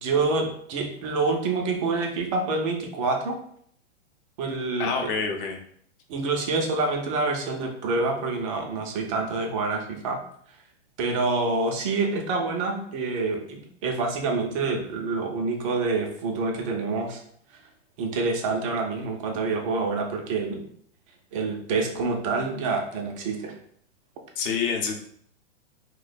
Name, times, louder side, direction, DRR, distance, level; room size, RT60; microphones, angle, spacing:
voice 1, 0.0-3.4 4.4-5.1 6.1-10.2 11.0-17.2 18.0-20.6 21.3-23.5, right 3 dB, 25° right, 2 dB, 0.5 m, -27 dB
voice 2, 4.8-5.6 24.4-25.0, left 5 dB, 45° left, 3 dB, 0.7 m, -27 dB
2.7 x 2.2 x 4.0 m, 0.64 s
hypercardioid pair, 145°, 38 cm